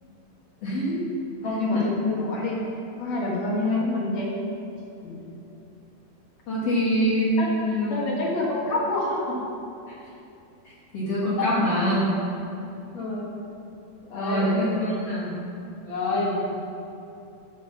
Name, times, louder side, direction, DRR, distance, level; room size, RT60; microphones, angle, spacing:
voice 1, 0.6-1.0 1.7-1.9 6.5-8.3 9.9-10.0 10.9-12.0 14.1-15.3, equal, 55° left, -8 dB, 2.0 m, -25 dB
voice 2, 1.4-2.6 3.0-4.3 5.0-5.3 7.4-9.4 11.4-11.5 12.9-13.4 14.0-14.5 15.8-16.4, left 2 dB, 75° left, -5 dB, 1.1 m, -27 dB
9.8 x 3.4 x 7.0 m, 2.7 s
omnidirectional pair, 4.3 m